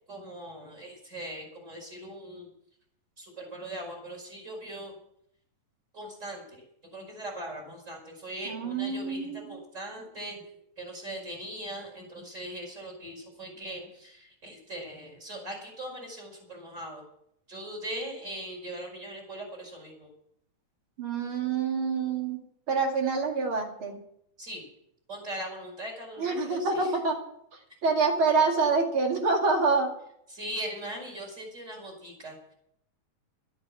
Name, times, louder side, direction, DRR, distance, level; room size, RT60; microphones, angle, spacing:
voice 1, 0.1-2.5 3.2-5.0 5.9-10.5 10.8-17.0 17.5-20.1 24.4-24.6 25.1-27.0 30.3-32.5, right 1 dB, 20° right, 1 dB, 5.4 m, -40 dB
voice 2, 8.5-9.5 21.0-22.4 22.7-23.9 26.2-27.2 27.8-29.9, right 4 dB, 40° right, 2 dB, 2.8 m, -26 dB
13.0 x 9.9 x 8.4 m, 0.73 s
omnidirectional pair, 4.1 m